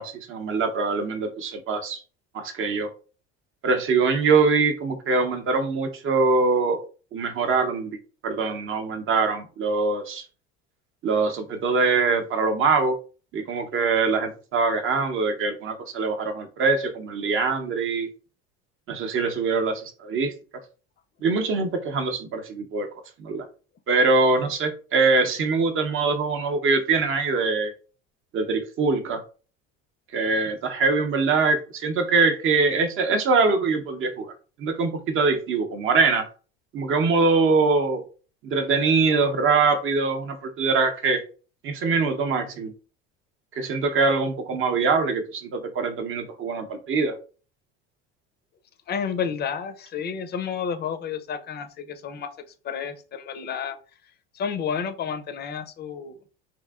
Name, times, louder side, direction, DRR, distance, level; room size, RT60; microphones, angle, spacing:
voice 1, 0.0-2.0 2.3-2.9 3.6-6.8 7.1-8.0 8.2-10.2 11.0-13.0 13.3-18.1 18.9-20.3 21.2-22.9 23.2-23.4 23.9-27.7 28.3-29.2 30.1-34.3 34.6-36.3 36.7-38.0 38.4-41.2 41.6-42.7 43.6-47.1, right 4 dB, 45° right, 7 dB, 0.7 m, -23 dB
voice 2, 48.9-52.3 52.6-53.8 54.3-56.2, left 7 dB, 35° left, 9 dB, 0.5 m, -30 dB
3.0 x 2.6 x 2.3 m, 0.37 s
supercardioid pair, 90°, 30 cm